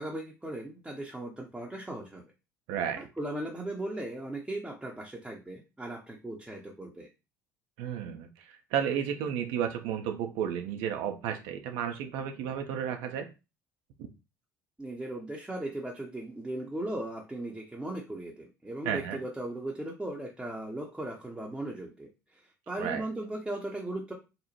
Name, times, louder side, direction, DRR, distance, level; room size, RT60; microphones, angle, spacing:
voice 1, 0.0-2.2 3.0-7.1 14.8-24.1, right 1 dB, 10° right, -2 dB, 0.5 m, -37 dB
voice 2, 2.7-3.0 7.8-13.3 18.9-19.2 22.8-23.0, right 8 dB, 55° right, 6 dB, 0.4 m, -32 dB
2.8 x 2.0 x 2.8 m, 0.28 s
figure-of-eight pair, 60°, 9 cm